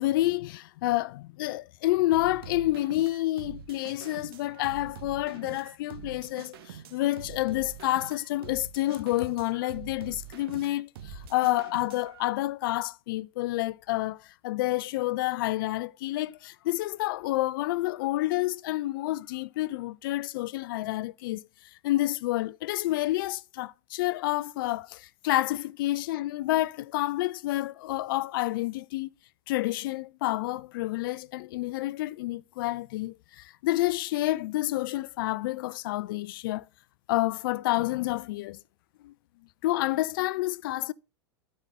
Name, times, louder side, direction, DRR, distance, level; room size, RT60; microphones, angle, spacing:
voice 1, 0.0-21.4 21.8-29.1 29.5-36.7 37.1-38.6 39.0-39.1 39.6-40.9, left 17 dB, 55° left, 0.4 m, -29 dB
sound 1, 2.1-12.2, right 9 dB, 60° right, 0.9 m, -45 dB
12.0 x 5.5 x 3.5 m
figure-of-eight pair, 95°, 14 cm